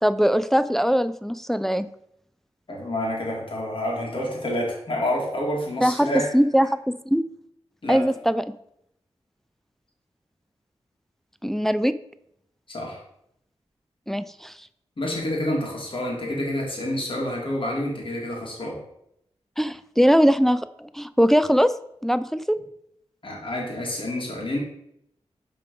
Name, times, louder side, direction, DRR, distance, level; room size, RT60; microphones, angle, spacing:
voice 1, 0.0-1.9 5.8-6.1 6.3-6.7 7.1-7.2 7.9-8.4 11.4-11.9 14.1-14.5 19.6-21.7 22.0-22.4, equal, 5° left, 12 dB, 0.3 m, -21 dB
voice 2, 2.7-6.3 7.8-8.0 12.7-13.0 15.0-18.8 23.2-24.6, left 1 dB, 50° left, -2 dB, 2.3 m, -28 dB
5.5 x 3.8 x 5.2 m, 0.76 s
cardioid pair, 60°, 11 cm